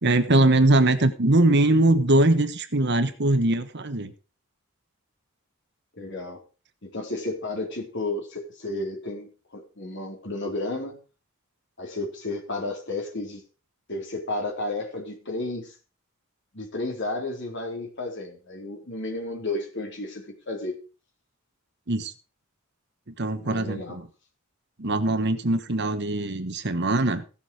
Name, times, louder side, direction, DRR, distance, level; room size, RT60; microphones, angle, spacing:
voice 1, 0.0-4.1 21.9-22.1 23.1-24.1 24.8-27.2, right 2 dB, 50° right, 11 dB, 1.2 m, -21 dB
voice 2, 6.0-6.4 6.8-11.0 11.8-13.4 13.9-15.7 16.5-20.8 23.4-24.0, left 2 dB, 55° left, 0 dB, 3.9 m, -32 dB
16.0 x 7.1 x 4.9 m, 0.34 s
head